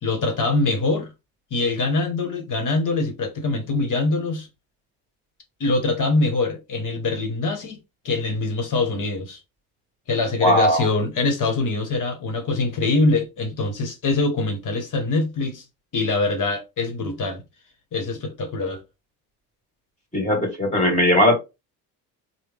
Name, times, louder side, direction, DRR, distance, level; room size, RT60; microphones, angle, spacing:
voice 1, 0.0-1.1 1.5-4.5 5.6-7.8 8.0-9.4 10.1-15.6 15.9-17.4 17.9-18.8, left 3 dB, 45° left, 1.2 m, -23 dB
voice 2, 10.4-10.9 20.1-21.4, left 1 dB, 15° left, 2.1 m, -18 dB
3.4 x 2.3 x 3.0 m
supercardioid pair, 70°, 46 cm